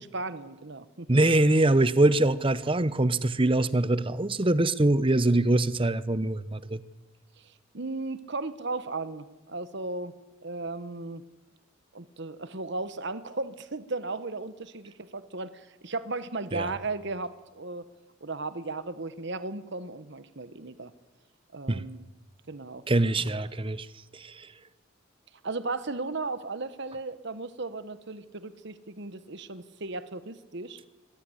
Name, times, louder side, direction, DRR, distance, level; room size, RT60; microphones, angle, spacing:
voice 1, 0.0-1.1 7.7-10.1 10.4-11.2 11.9-17.9 18.2-20.9 21.5-22.0 22.5-22.8 25.4-30.8, right 3 dB, 60° right, 1.2 m, -35 dB
voice 2, 1.1-6.8 16.5-16.7 21.7-21.9 22.9-23.9 24.1-24.5, right 2 dB, 25° right, 0.8 m, -23 dB
23.5 x 16.5 x 9.9 m
head